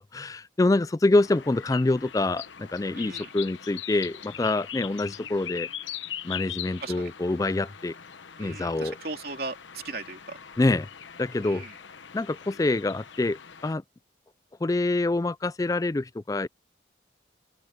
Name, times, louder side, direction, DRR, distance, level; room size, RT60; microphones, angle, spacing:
voice 1, 0.1-5.7 6.2-7.9 8.4-9.0 10.6-10.9 11.2-11.6 12.1-13.8 14.6-16.5, left 2 dB, 20° left, 0.3 m, -26 dB
sound 1, 1.1-13.7, left 9 dB, 90° left, 1.1 m, -41 dB
voice 2, 2.9-3.3 6.8-7.1 8.4-10.4 11.4-11.7, right 3 dB, 55° right, 3.3 m, -38 dB
open air
head